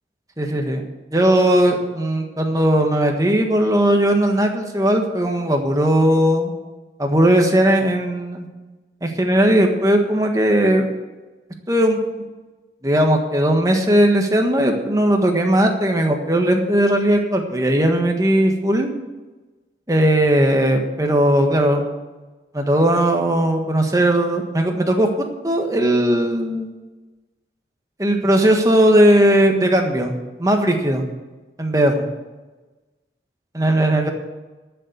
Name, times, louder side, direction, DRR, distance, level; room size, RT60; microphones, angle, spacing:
voice 1, 0.4-0.8 1.1-6.5 7.0-8.5 9.0-10.9 11.7-12.0 12.8-18.9 19.9-21.8 22.5-25.1 25.4-26.7 28.0-30.1 30.4-31.0 31.6-32.0 33.5-34.1, right 1 dB, 20° right, 3 dB, 1.4 m, -17 dB
12.0 x 7.1 x 7.9 m, 1.2 s
head